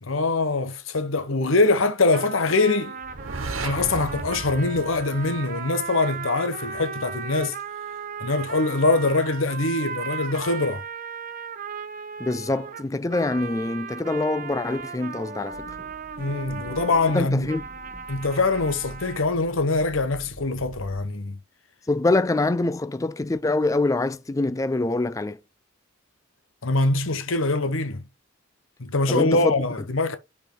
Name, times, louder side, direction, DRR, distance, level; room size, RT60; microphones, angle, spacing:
voice 1, 0.0-2.9 3.6-7.6 8.2-10.8 16.2-17.5 18.1-21.4 26.6-28.0 28.8-30.2, left 3 dB, 75° left, 0.9 m, -23 dB
sound 1, 2.1-19.3, right 5 dB, 40° right, 0.6 m, -36 dB
sound 2, 3.0-5.9, right 3 dB, 80° right, 1.4 m, -35 dB
voice 2, 12.2-15.7 17.1-17.6 21.9-25.4 29.1-29.5, left 2 dB, 15° left, 0.3 m, -25 dB
sound 3, 15.5-21.0, right 1 dB, 25° right, 1.9 m, -45 dB
5.1 x 4.8 x 4.4 m
head